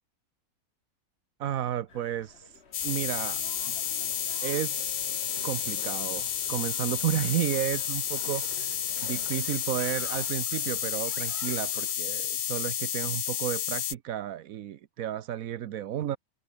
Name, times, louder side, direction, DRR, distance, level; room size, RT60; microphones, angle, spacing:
voice 1, 1.4-3.4 3.7-3.8 4.4-5.0 5.4-16.2, right 11 dB, 75° right, 1.2 m, -32 dB
sound 1, 1.9-11.9, left 5 dB, 50° left, 1.8 m, -53 dB
sound 2, 2.7-13.9, left 9 dB, 85° left, 1.6 m, -31 dB
sound 3, 2.8-10.3, right 3 dB, 30° right, 1.9 m, -50 dB
omnidirectional pair, 1.5 m